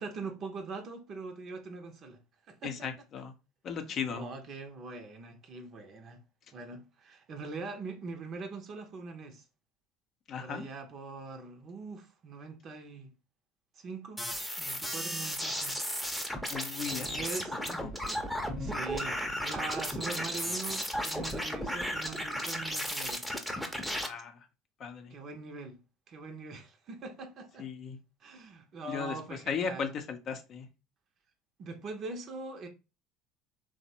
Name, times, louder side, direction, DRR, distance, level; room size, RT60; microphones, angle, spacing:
voice 1, 0.0-2.2 2.5-2.9 3.9-6.2 6.5-9.4 10.4-13.1 13.8-14.2 14.6-15.8 16.9-17.9 18.6-23.3 25.1-25.8 26.1-27.7 28.2-29.9 31.6-32.7, right 3 dB, 50° right, 0.5 m, -42 dB
voice 2, 2.6-3.3 3.6-4.3 10.3-10.7 16.5-17.1 17.8-17.9 24.0-24.4 24.8-25.1 27.6-28.0 28.9-30.7, left 6 dB, 50° left, 0.5 m, -36 dB
sound 1, 14.2-24.1, equal, ahead, 0.6 m, -34 dB
3.1 x 2.0 x 2.7 m
hypercardioid pair, 70°, 0 cm